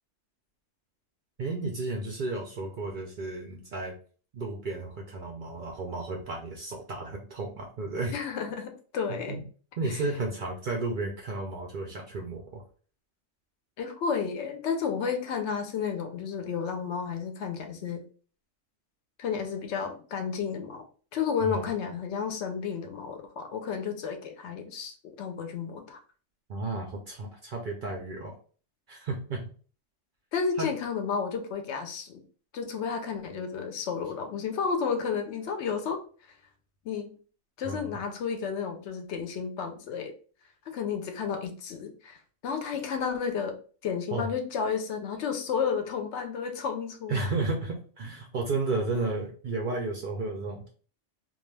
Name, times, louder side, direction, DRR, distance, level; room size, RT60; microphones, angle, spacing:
voice 1, 1.4-3.9 4.3-8.1 9.1-9.4 9.8-12.6 21.4-21.7 26.5-28.3 28.9-29.4 30.6-30.7 37.6-37.9 44.1-44.3 47.1-50.7, right 3 dB, 60° right, 1 dB, 0.5 m, -33 dB
voice 2, 8.1-9.4 13.8-18.0 19.2-20.8 21.1-26.0 30.3-32.2 32.5-36.0 36.8-37.1 37.6-40.1 40.7-43.6 43.8-47.3, left 6 dB, 75° left, 5 dB, 0.8 m, -32 dB
2.3 x 2.3 x 3.1 m, 0.40 s
omnidirectional pair, 1.2 m